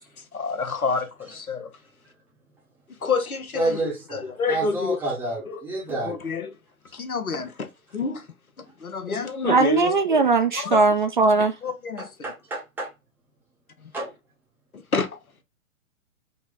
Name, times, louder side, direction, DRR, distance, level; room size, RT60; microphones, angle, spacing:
voice 1, 0.3-1.7 3.0-3.8 4.1-5.0 5.5-5.6 5.9-6.5 6.9-8.2 8.6-10.2 10.6-10.9 11.6-12.1 14.9-15.2, left 4 dB, 85° left, 0.9 m, -28 dB
voice 2, 3.5-6.2 12.0-12.9 13.9-14.1, right 2 dB, 5° right, 0.7 m, -29 dB
voice 3, 9.4-11.5, right 3 dB, 35° right, 0.4 m, -19 dB
4.0 x 2.1 x 3.8 m
figure-of-eight pair, 120°, 42 cm